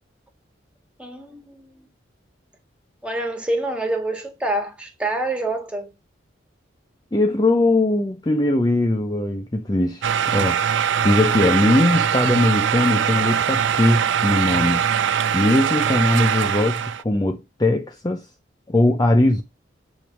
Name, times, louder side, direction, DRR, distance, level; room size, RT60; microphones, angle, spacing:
voice 1, 1.0-1.7 3.0-5.9, right 2 dB, 5° right, 1.7 m, -26 dB
voice 2, 7.1-10.6 11.0-14.8 15.3-18.3 18.7-19.4, left 1 dB, 20° left, 0.5 m, -20 dB
sound 1, 10.0-17.0, right 8 dB, 70° right, 0.4 m, -22 dB
8.7 x 3.5 x 5.9 m
head